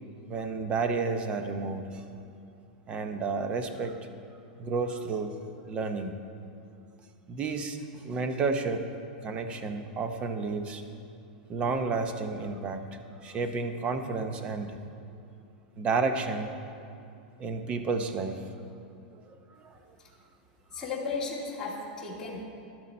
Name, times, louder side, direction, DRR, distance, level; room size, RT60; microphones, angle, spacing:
voice 1, 0.3-2.0 2.9-4.0 4.6-5.4 5.7-6.2 7.3-8.9 9.2-10.8 11.5-12.8 13.2-14.8 15.8-16.5 17.4-18.5 19.2-19.3 19.6-19.8 20.7-20.8, right 4 dB, 25° right, 7 dB, 0.7 m, -31 dB
voice 2, 20.7-22.4, left 4 dB, 10° left, -7 dB, 2.0 m, -35 dB
11.5 x 10.5 x 4.3 m, 2.6 s
supercardioid pair, 155°, 5 cm